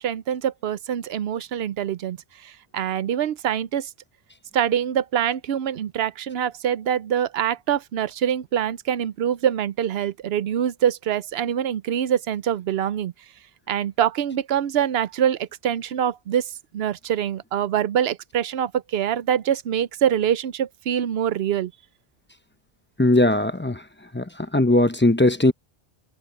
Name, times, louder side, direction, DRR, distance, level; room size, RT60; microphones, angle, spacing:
voice 1, 0.0-2.2 2.4-3.9 4.5-13.1 13.7-21.7, right 9 dB, 75° right, 0.9 m, -24 dB
voice 2, 23.0-23.8 24.1-24.2 24.5-25.5, left 1 dB, 10° left, 0.7 m, -18 dB
omnidirectional pair, 1.1 m